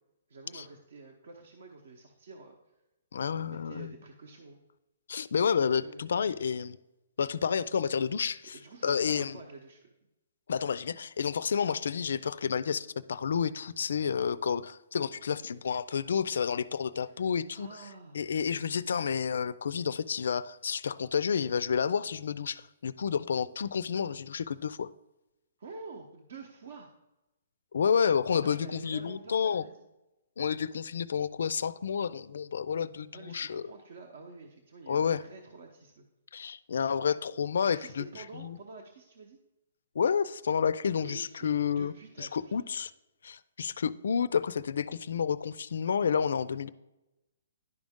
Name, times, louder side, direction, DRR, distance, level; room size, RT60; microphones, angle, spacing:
voice 1, 0.3-2.6 3.2-4.6 5.8-6.4 8.5-9.9 17.0-17.3 17.5-18.3 25.6-26.9 28.4-29.9 33.1-36.0 37.6-39.4 41.0-42.6, right 3 dB, 50° right, 1 dB, 0.8 m, -48 dB
voice 2, 3.1-3.9 5.1-6.8 7.2-8.6 8.8-9.4 10.5-17.7 18.1-24.9 27.7-29.6 30.4-33.6 34.9-35.2 36.3-38.0 38.3-38.6 40.0-41.9 42.2-42.9 43.2-46.7, left 7 dB, 65° left, 18 dB, 0.3 m, -30 dB
10.5 x 5.2 x 3.6 m, 0.97 s
hypercardioid pair, 175°, 0 cm